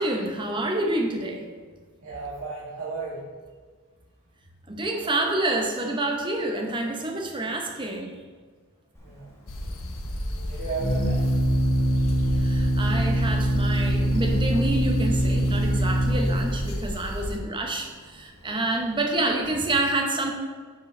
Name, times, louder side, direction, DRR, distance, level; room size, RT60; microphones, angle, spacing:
voice 1, 0.0-1.5 4.7-8.1 12.4-20.3, right 2 dB, 20° right, 2 dB, 0.8 m, -28 dB
voice 2, 2.0-3.2 5.0-5.2 9.0-9.3 10.4-11.4 15.7-15.8, right 4 dB, 70° right, -9 dB, 1.8 m, -34 dB
Organ, 9.0-19.4, equal, 10° left, 1.3 m, -25 dB
sound 1, 9.5-17.4, left 1 dB, 65° left, 0.8 m, -33 dB
9.2 x 5.1 x 3.2 m, 1.5 s
head